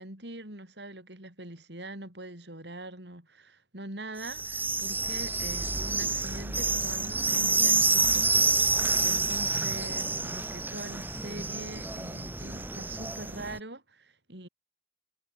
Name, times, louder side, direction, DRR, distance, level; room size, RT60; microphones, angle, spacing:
voice 1, 0.0-8.3 8.6-14.5, right 1 dB, 70° right, 6.4 m, -43 dB
sound 1, 4.2-13.6, right 3 dB, 10° right, 1.1 m, -28 dB
head